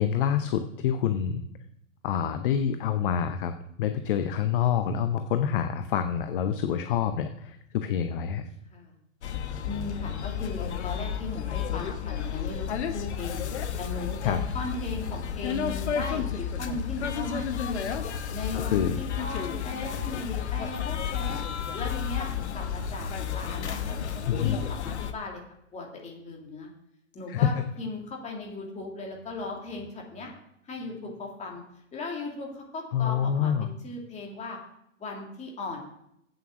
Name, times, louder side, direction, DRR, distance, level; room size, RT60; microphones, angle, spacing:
voice 1, 0.0-1.4 2.0-8.4 14.2-14.4 18.5-19.0 24.3-24.6 27.3-27.6 32.9-33.7, left 8 dB, 45° left, 9 dB, 0.7 m, -27 dB
sound 1, 9.2-25.1, left 8 dB, 60° left, 1.1 m, -32 dB
voice 2, 9.6-13.4 13.8-17.8 18.3-21.4 21.7-24.1 24.4-25.4 25.7-26.7 27.1-30.3 30.6-31.6 31.9-34.6 35.0-35.8, left 2 dB, 15° left, 0 dB, 2.6 m, -37 dB
8.2 x 7.7 x 6.1 m, 0.77 s
figure-of-eight pair, 105°, 39 cm